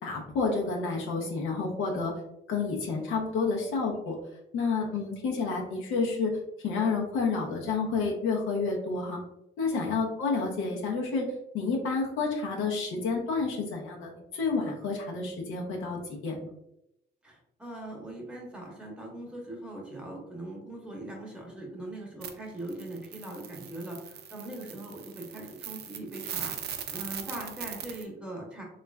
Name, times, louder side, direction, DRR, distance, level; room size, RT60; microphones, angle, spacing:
voice 1, 0.0-2.1 2.5-4.2 4.5-6.4 6.6-9.2 9.6-11.3 11.5-16.4, left 4 dB, 80° left, -1 dB, 0.6 m, -29 dB
voice 2, 17.2-28.6, right 1 dB, 5° right, -2 dB, 0.9 m, -41 dB
sound 1, 22.2-22.3 22.6-28.0, right 8 dB, 55° right, 0.4 m, -40 dB
3.1 x 2.4 x 2.2 m, 0.83 s
cardioid pair, 90°, 20 cm